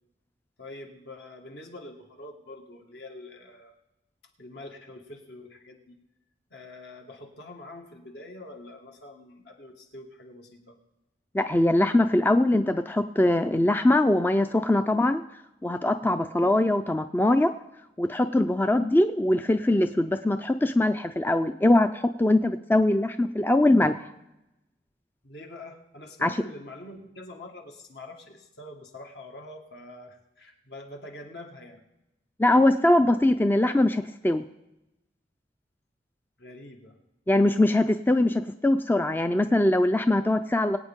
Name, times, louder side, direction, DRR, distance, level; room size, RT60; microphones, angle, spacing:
voice 1, 0.6-3.8 4.4-6.0 6.5-10.8 25.2-31.8 36.4-37.0, left 2 dB, 70° left, 2 dB, 1.9 m, -45 dB
voice 2, 11.3-15.2 15.6-17.5 18.0-24.0 26.2-26.3 32.4-34.4 37.3-40.8, left 1 dB, 10° left, 9 dB, 0.4 m, -22 dB
22.5 x 8.8 x 3.7 m, 0.94 s
head